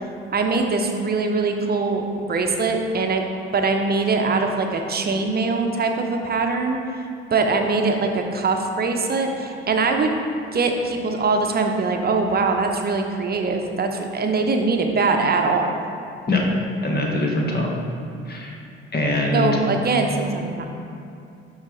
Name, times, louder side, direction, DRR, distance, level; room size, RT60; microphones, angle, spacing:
voice 1, 0.3-3.2 3.5-6.8 7.3-10.2 10.5-15.8 19.3-20.6, right 3 dB, 30° right, 4 dB, 1.0 m, -22 dB
voice 2, 16.8-17.7 18.3-18.5 18.9-19.6, left 2 dB, 30° left, 0 dB, 1.6 m, -22 dB
11.5 x 4.0 x 4.0 m, 2.6 s
figure-of-eight pair, 45°, 31 cm